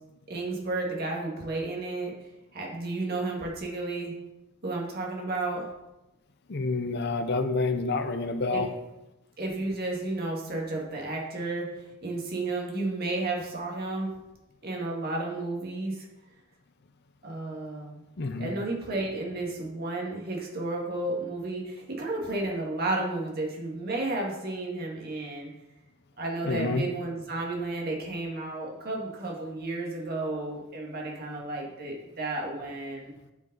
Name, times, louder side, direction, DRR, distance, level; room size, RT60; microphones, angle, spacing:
voice 1, 0.3-2.1 2.5-4.1 4.6-5.7 8.5-8.6 9.4-11.7 12.0-14.1 14.6-16.1 17.2-18.0 18.4-25.5 26.2-33.1, right 2 dB, 45° right, -2 dB, 2.0 m, -32 dB
voice 2, 6.5-8.7 18.2-18.5 26.4-26.9, left 3 dB, 50° left, 8 dB, 0.7 m, -28 dB
9.1 x 5.4 x 4.0 m, 0.97 s
head